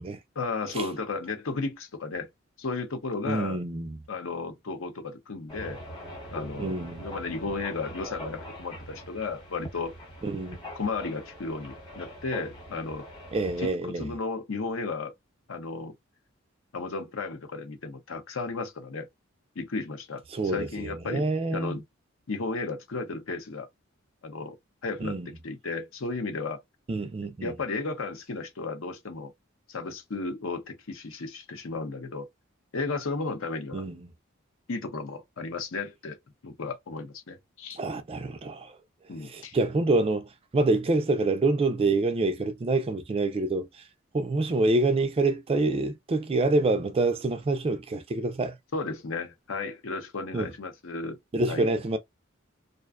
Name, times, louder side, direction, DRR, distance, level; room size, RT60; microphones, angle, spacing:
voice 1, 0.4-2.3 2.6-3.6 4.1-5.8 6.3-9.9 10.7-13.0 13.6-15.1 15.5-15.9 16.7-19.1 19.6-21.8 22.3-23.7 24.2-24.6 24.8-25.2 25.4-26.6 27.4-29.3 29.7-32.3 32.7-33.8 34.7-36.2 36.4-37.8 39.1-39.6 48.7-51.2 51.5-51.7, left 3 dB, 75° left, 0.7 m, -34 dB
voice 2, 3.3-4.0 6.6-7.1 10.2-10.6 13.3-14.1 20.3-21.8 25.0-25.3 26.9-27.5 33.7-34.0 37.8-38.7 39.2-43.7 44.1-48.6 50.3-50.5 51.3-52.0, right 2 dB, 30° right, 0.3 m, -26 dB
sound 1, 5.5-13.7, equal, 25° left, 1.0 m, -42 dB
2.5 x 2.1 x 2.4 m
head